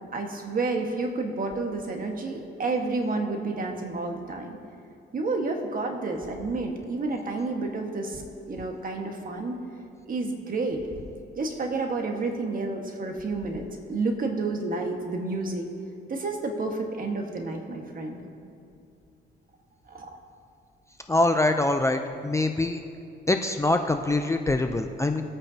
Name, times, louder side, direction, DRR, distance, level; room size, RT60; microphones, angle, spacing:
voice 1, 0.1-4.6 5.1-8.2 8.5-9.6 10.1-10.8 11.3-15.7 16.1-18.2 19.9-20.1, right 3 dB, 45° right, 3 dB, 1.6 m, -30 dB
voice 2, 21.1-22.8 23.3-25.2, left 2 dB, 15° left, 5 dB, 0.6 m, -24 dB
21.0 x 8.7 x 2.9 m, 2.7 s
cardioid pair, 90°, 20 cm